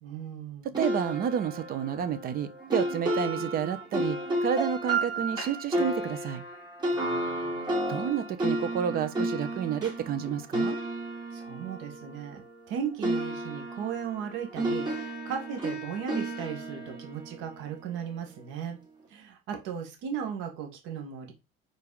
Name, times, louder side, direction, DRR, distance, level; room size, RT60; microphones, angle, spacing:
voice 1, 0.0-0.8 6.9-7.7 11.3-12.4 12.7-18.8 19.1-21.3, right 7 dB, 75° right, 1.9 m, -37 dB
voice 2, 0.6-6.4 7.9-10.8, right 8 dB, 50° right, 1.0 m, -30 dB
sound 1, 0.7-12.7 13.0-18.2, right 1 dB, 20° right, 2.8 m, -32 dB
5.1 x 4.5 x 4.8 m
cardioid pair, 125°, 20 cm